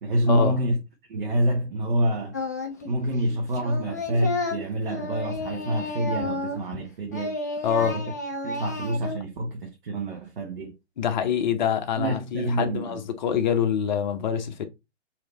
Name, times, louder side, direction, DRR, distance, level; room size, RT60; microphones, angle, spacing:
voice 1, 0.0-0.8 1.1-2.4 2.8-7.4 7.9-8.0 8.4-10.7 12.0-13.0, right 1 dB, 50° right, 0.9 m, -27 dB
Singing, 2.3-2.9 3.2-6.8 7.1-9.2, left 2 dB, 15° left, 0.3 m, -31 dB
voice 2, 7.6-8.0 11.0-14.6, left 8 dB, 40° left, 0.8 m, -25 dB
3.2 x 2.9 x 4.0 m
figure-of-eight pair, 130°, 35 cm